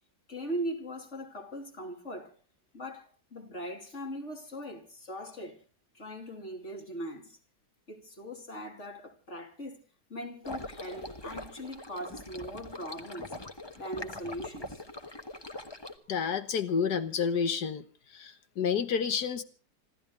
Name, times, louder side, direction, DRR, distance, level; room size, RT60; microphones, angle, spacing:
voice 1, 0.3-2.3 2.7-5.6 5.9-7.4 7.9-9.8 10.1-13.3 13.7-14.8, equal, 45° left, 3.2 m, -40 dB
sound 1, 10.4-15.9, left 1 dB, 15° left, 1.2 m, -42 dB
voice 2, 16.1-17.8 18.1-19.4, left 6 dB, 75° left, 1.7 m, -29 dB
26.5 x 14.5 x 3.7 m
omnidirectional pair, 1.8 m